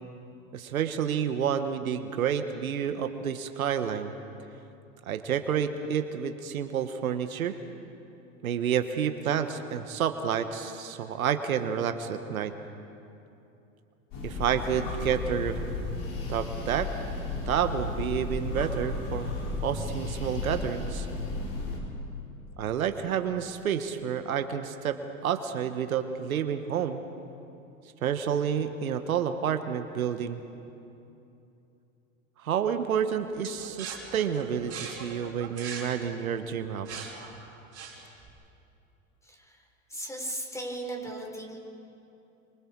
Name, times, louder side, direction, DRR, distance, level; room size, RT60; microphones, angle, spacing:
voice 1, 0.5-4.1 5.1-7.6 8.4-12.5 14.2-15.6 16.3-16.9 17.3-19.3 19.6-21.1 22.6-27.0 28.0-30.4 32.4-37.1, right 8 dB, 85° right, 9 dB, 1.3 m, -29 dB
sound 1, 14.1-21.8, left 3 dB, 50° left, 6.2 m, -34 dB
sound 2, 33.4-38.3, right 5 dB, 35° right, 5.5 m, -41 dB
voice 2, 39.2-41.6, right 1 dB, 5° left, 1 dB, 4.7 m, -37 dB
27.5 x 25.0 x 4.7 m, 2.8 s
hypercardioid pair, 95°, 41 cm